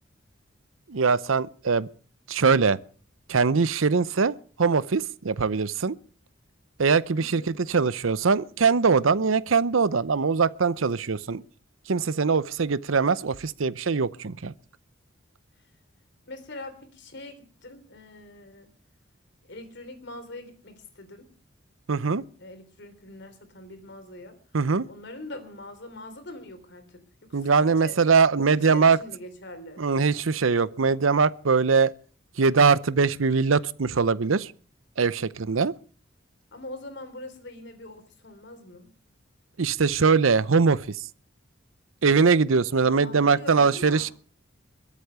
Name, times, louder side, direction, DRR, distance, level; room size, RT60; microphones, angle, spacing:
voice 1, 0.9-1.9 2.3-2.8 3.3-5.9 6.8-11.4 11.9-14.5 21.9-22.2 24.5-24.8 27.3-29.0 29.8-31.9 32.4-34.5 35.0-35.7 39.6-40.8 42.0-44.1, right 5 dB, 85° right, 0.7 m, -22 dB
voice 2, 7.1-7.5 16.2-18.7 19.4-21.3 22.4-24.4 24.9-27.9 28.4-29.8 36.5-38.9 42.8-44.1, left 2 dB, 60° left, 3.5 m, -43 dB
21.5 x 8.3 x 6.9 m
head